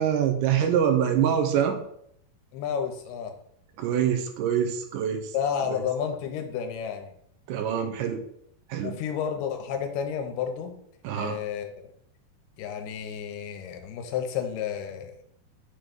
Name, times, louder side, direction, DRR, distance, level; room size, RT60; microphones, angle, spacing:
voice 1, 0.0-1.8 3.8-5.3 5.7-5.8 7.5-8.2 8.7-9.0 11.0-11.4, right 8 dB, 80° right, 5 dB, 2.1 m, -25 dB
voice 2, 2.5-3.3 5.3-7.1 8.8-10.7 11.2-11.9 12.6-15.2, left 8 dB, 80° left, 5 dB, 2.4 m, -31 dB
6.1 x 3.0 x 5.2 m, 0.70 s
omnidirectional pair, 3.9 m